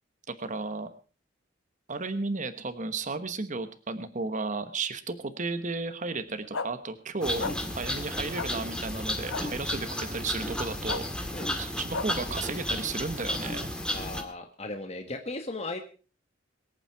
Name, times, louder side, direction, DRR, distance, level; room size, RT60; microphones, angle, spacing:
voice 1, 0.3-0.9 1.9-7.4 7.7-11.0 11.6-13.7, right 3 dB, 40° right, 10 dB, 1.2 m, -34 dB
sound 1, 6.5-6.7 7.4-7.5 8.3-8.5 9.3-9.4 10.9-11.0 11.9-12.1, left 4 dB, 85° left, 1.1 m, -32 dB
sound 2, 7.2-14.2, left 1 dB, 5° left, 1.9 m, -33 dB
voice 2, 13.9-15.8, left 2 dB, 35° left, 5 dB, 1.4 m, -36 dB
22.5 x 8.9 x 4.7 m, 0.38 s
head